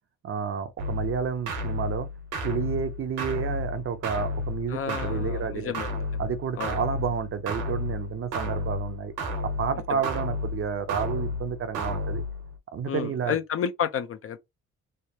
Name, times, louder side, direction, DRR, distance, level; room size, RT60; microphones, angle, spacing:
voice 1, 0.2-2.1 2.4-5.7 6.2-9.1 9.6-12.3 12.7-13.4, right 7 dB, 45° right, 0.5 m, -30 dB
sound 1, 0.8-12.6, left 2 dB, 90° right, 1.1 m, -32 dB
voice 2, 4.7-6.2 6.6-6.8 9.9-10.0 12.8-14.4, left 8 dB, 50° left, 0.4 m, -31 dB
3.2 x 2.1 x 2.7 m
cardioid pair, 90°, 30 cm